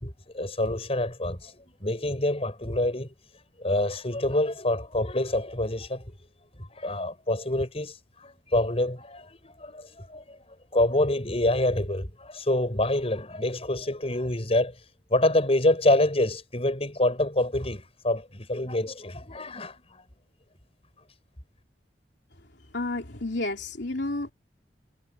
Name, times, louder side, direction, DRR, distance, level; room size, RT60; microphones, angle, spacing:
voice 1, 0.0-3.1 3.6-6.0 6.6-7.9 8.2-10.4 10.7-14.8 15.1-20.0, left 1 dB, 35° left, 5.7 m, -26 dB
voice 2, 22.7-24.3, left 2 dB, 70° left, 3.3 m, -30 dB
head